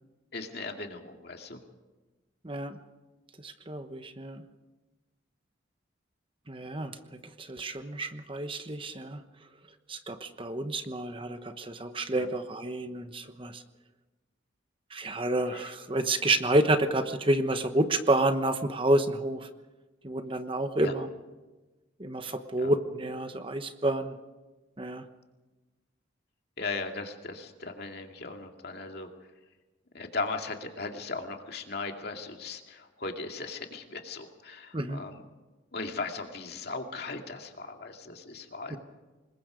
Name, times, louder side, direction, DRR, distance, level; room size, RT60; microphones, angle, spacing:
voice 1, 0.3-1.6 12.1-12.3 15.5-15.7 20.8-20.9 22.6-22.7 26.6-29.1 29.9-35.2 35.7-38.8, left 3 dB, 55° left, 3 dB, 2.4 m, -38 dB
voice 2, 2.4-2.8 3.4-4.4 6.5-7.0 7.4-9.2 9.9-13.6 14.9-19.5 20.0-21.1 22.0-24.1 24.8-25.0 34.7-35.0 38.7-38.8, right 1 dB, 25° right, 8 dB, 1.1 m, -29 dB
26.5 x 21.5 x 5.1 m, 1.2 s
head